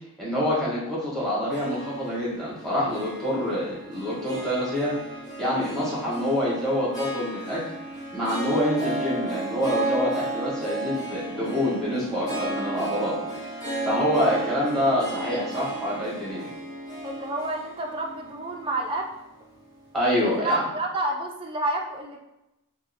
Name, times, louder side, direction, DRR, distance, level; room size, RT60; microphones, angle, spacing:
voice 1, 0.2-4.9 5.4-7.6 8.1-13.1 13.4-13.5 13.8-16.5 19.9-20.6, equal, ahead, -7 dB, 1.2 m, -26 dB
Harp, 1.5-19.9, right 2 dB, 15° left, 0.7 m, -34 dB
voice 2, 17.0-19.1 20.2-22.2, right 1 dB, 25° right, 0 dB, 0.4 m, -29 dB
2.8 x 2.8 x 2.7 m, 0.91 s
head